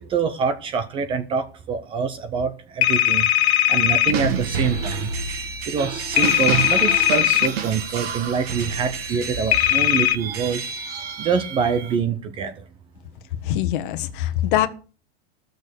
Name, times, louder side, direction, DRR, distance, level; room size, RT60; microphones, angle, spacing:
voice 1, 0.1-5.1 5.4-10.7 11.2-12.6, right 6 dB, 15° right, 0.6 m, -25 dB
sound 1, 2.8-4.2 6.2-7.5 9.5-10.2, left 13 dB, 75° left, 0.8 m, -19 dB
sound 2, 4.1-12.0, right 5 dB, 70° right, 2.0 m, -29 dB
voice 2, 13.4-14.7, left 13 dB, 50° left, 1.3 m, -23 dB
15.0 x 6.5 x 6.6 m
supercardioid pair, 170°, 32 cm